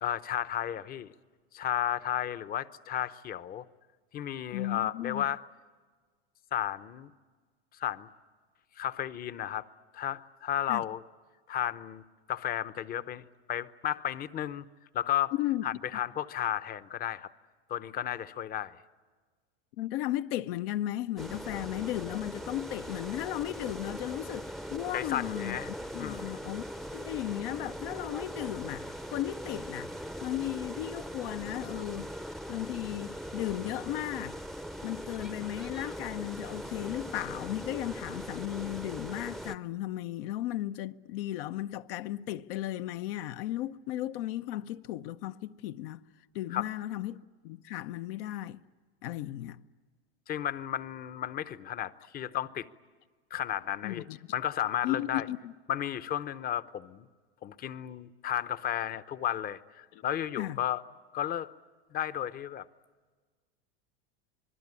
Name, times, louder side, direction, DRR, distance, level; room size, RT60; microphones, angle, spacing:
voice 1, 0.0-1.1 1.5-3.7 4.1-5.4 6.5-7.1 7.8-8.1 8.8-9.6 9.9-11.0 11.5-12.0 12.3-14.7 14.9-15.3 15.6-17.3 17.7-18.8 24.9-25.7 26.0-26.4 46.5-46.7 50.3-52.7 53.3-54.0 54.3-55.3 55.7-57.1 57.4-60.8 61.1-61.5 61.9-62.7, left 11 dB, 30° left, 0.8 m, -33 dB
voice 2, 4.5-5.2 10.7-10.8 15.3-15.6 19.8-25.6 25.9-26.6 26.9-29.9 30.2-32.1 32.5-34.4 34.8-46.0 46.3-47.2 47.4-48.6 49.0-49.6 53.8-54.2 54.8-55.5 60.4-60.6, left 14 dB, 65° left, 0.8 m, -35 dB
sound 1, 21.2-39.6, equal, ahead, 0.7 m, -40 dB
26.5 x 20.5 x 9.7 m
supercardioid pair, 125°, 30 cm